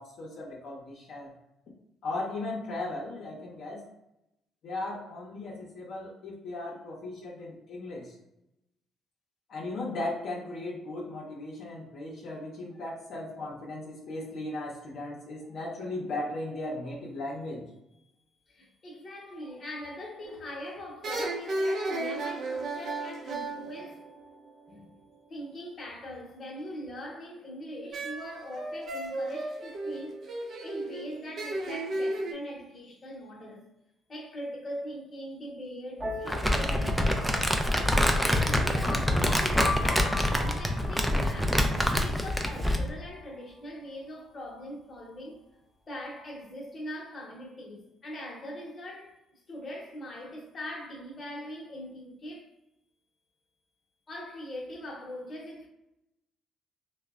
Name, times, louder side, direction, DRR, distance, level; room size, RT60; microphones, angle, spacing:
voice 1, 0.0-1.3 2.0-3.9 4.6-8.1 9.5-17.6, left 2 dB, 65° left, 0.6 m, -37 dB
voice 2, 18.5-24.1 24.7-24.9 25.3-30.2 30.6-33.7 34.1-37.6 37.9-45.4 45.9-52.5 54.1-55.7, equal, 40° left, 0.8 m, -41 dB
sound 1, 20.2-20.6 21.0-24.7 27.9-32.3, right 2 dB, 60° right, 0.5 m, -34 dB
sound 2, 36.0-43.6, left 3 dB, 25° right, 0.8 m, -40 dB
Crumpling crinkling, 36.3-42.9, equal, ahead, 0.4 m, -26 dB
2.9 x 2.1 x 2.3 m
cardioid pair, 85°, 0 cm